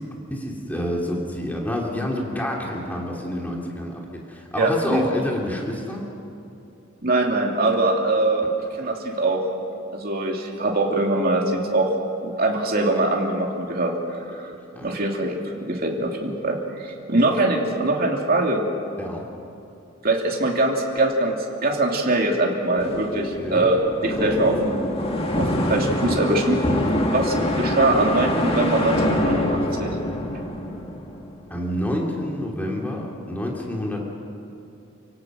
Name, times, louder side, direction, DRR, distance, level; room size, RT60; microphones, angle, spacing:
voice 1, 0.0-6.0 14.7-15.0 19.0-19.3 23.3-23.7 27.2-27.4 31.5-34.0, left 1 dB, 10° left, -2 dB, 3.0 m, -28 dB
voice 2, 4.6-5.1 7.0-8.5 8.7-9.4 9.9-11.9 12.2-14.5 14.8-18.6 20.0-24.8 25.4-26.6 27.1-29.9, right 2 dB, 50° right, 0 dB, 2.9 m, -22 dB
sound 1, 22.8-31.6, left 1 dB, 30° left, 1.8 m, -25 dB
29.5 x 17.0 x 6.3 m, 2.8 s
head